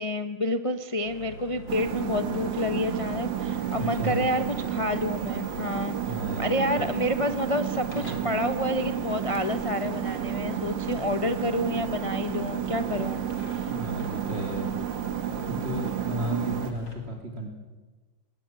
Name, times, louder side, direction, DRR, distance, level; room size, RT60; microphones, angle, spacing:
voice 1, 0.0-5.9 6.4-13.2 13.5-13.7, left 1 dB, 55° left, 9 dB, 0.3 m, -29 dB
sound 1, 1.0-17.0, left 2 dB, 70° left, 4.0 m, -45 dB
sound 2, 1.7-16.7, right 10 dB, 80° right, 1.9 m, -31 dB
voice 2, 3.8-4.2 6.0-7.1 13.6-14.7 15.4-17.5, right 1 dB, 35° right, 2 dB, 3.0 m, -33 dB
20.5 x 18.0 x 7.6 m, 1.2 s
omnidirectional pair, 2.0 m